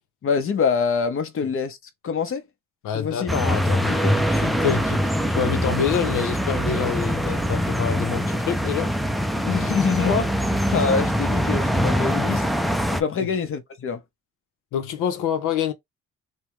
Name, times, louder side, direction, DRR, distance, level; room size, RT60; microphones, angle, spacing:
voice 1, 0.2-1.8 2.0-2.4 2.9-3.3 3.9-4.1 9.3-12.4 12.9-14.0, left 6 dB, 45° left, 0.8 m, -25 dB
voice 2, 2.8-8.9 13.2-13.3 14.7-15.7, left 8 dB, 85° left, 0.7 m, -27 dB
sound 1, 3.3-13.0, equal, ahead, 0.4 m, -23 dB
3.4 x 2.2 x 3.0 m
cardioid pair, 90°, 30 cm